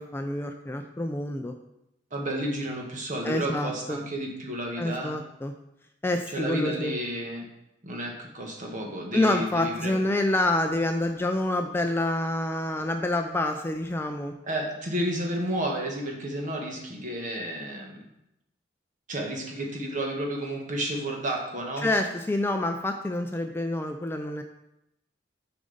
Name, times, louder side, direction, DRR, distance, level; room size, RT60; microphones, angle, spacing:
voice 1, 0.0-1.5 3.2-4.0 4.8-5.5 6.0-6.9 9.1-14.3 21.8-24.4, left 1 dB, 15° left, 5 dB, 0.3 m, -27 dB
voice 2, 2.1-5.2 6.3-7.5 7.8-10.0 14.4-17.9 19.1-21.9, right 1 dB, 45° right, 0 dB, 1.3 m, -31 dB
6.7 x 5.1 x 3.9 m, 0.85 s
head